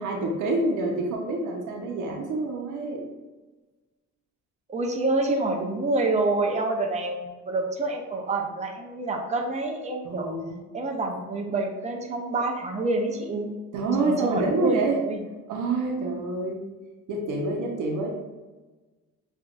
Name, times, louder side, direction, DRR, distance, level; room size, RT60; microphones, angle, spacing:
voice 1, 0.0-3.0 10.0-10.6 13.7-15.0 15.5-16.6 17.1-18.1, right 2 dB, 85° right, 0 dB, 1.0 m, -27 dB
voice 2, 4.7-10.3 10.7-13.5 14.0-15.2, right 2 dB, 25° right, 1 dB, 0.8 m, -27 dB
6.8 x 2.7 x 2.5 m, 1.2 s
cardioid pair, 90°, 30 cm